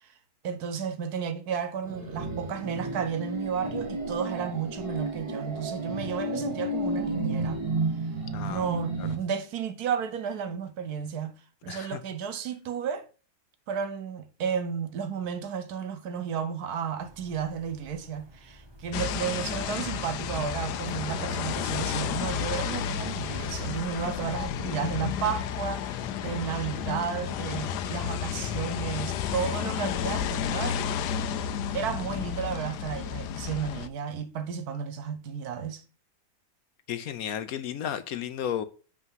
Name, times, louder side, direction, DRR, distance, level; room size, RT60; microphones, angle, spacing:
voice 1, 0.4-7.7 8.5-11.3 11.6-13.1 13.7-31.0 31.7-35.8, right 7 dB, 70° right, 1.3 m, -33 dB
sound 1, 1.8-9.1, right 2 dB, 40° right, 1.6 m, -32 dB
voice 2, 8.3-8.7 9.0-9.1 11.7-12.0 24.0-24.3 36.9-38.6, left 9 dB, 70° left, 1.0 m, -33 dB
sound 2, 17.0-24.3, right 1 dB, 20° right, 0.7 m, -44 dB
sound 3, 18.9-33.9, left 9 dB, 90° left, 1.2 m, -32 dB
8.0 x 3.6 x 5.5 m
omnidirectional pair, 1.7 m